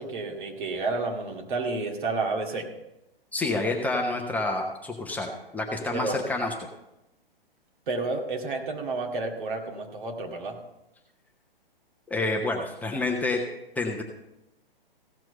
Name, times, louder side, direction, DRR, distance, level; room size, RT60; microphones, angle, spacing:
voice 1, 0.0-2.7 5.9-6.2 7.9-10.6, right 3 dB, 55° right, 2 dB, 2.3 m, -30 dB
voice 2, 3.3-6.5 12.1-13.4 13.8-14.0, left 2 dB, 5° left, 0 dB, 0.8 m, -28 dB
16.0 x 6.2 x 5.8 m, 0.91 s
figure-of-eight pair, 120°, 29 cm